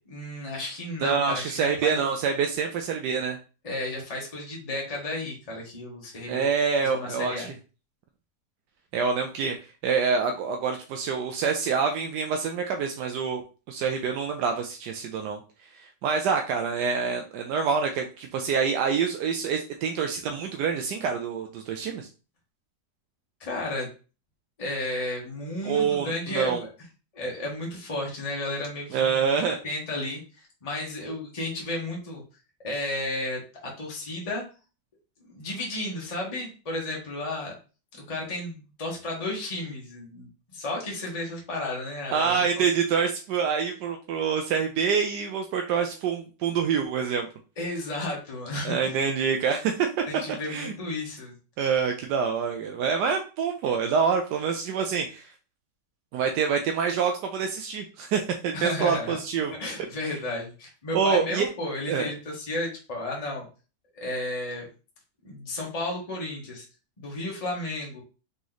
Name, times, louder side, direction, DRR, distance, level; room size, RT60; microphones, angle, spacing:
voice 1, 0.1-2.0 3.6-6.5 6.8-7.5 23.4-23.9 24.6-26.7 27.1-29.2 29.6-32.2 32.6-34.4 35.3-37.6 38.1-42.6 47.6-49.0 50.1-51.3 58.5-59.2 59.5-63.5 63.9-64.7 65.2-66.6 67.0-68.0, left 2 dB, 25° left, -2 dB, 1.2 m, -33 dB
voice 2, 1.0-3.4 6.3-7.5 8.9-9.6 9.8-13.4 13.7-15.4 15.8-22.1 25.6-26.6 28.9-29.6 42.1-47.3 48.6-49.9 50.5-50.7 51.6-55.3 56.1-59.5 60.0-60.2 60.9-61.5 61.9-62.1, right 6 dB, 80° right, 4 dB, 1.2 m, -26 dB
3.9 x 3.1 x 3.8 m, 0.34 s
omnidirectional pair, 1.8 m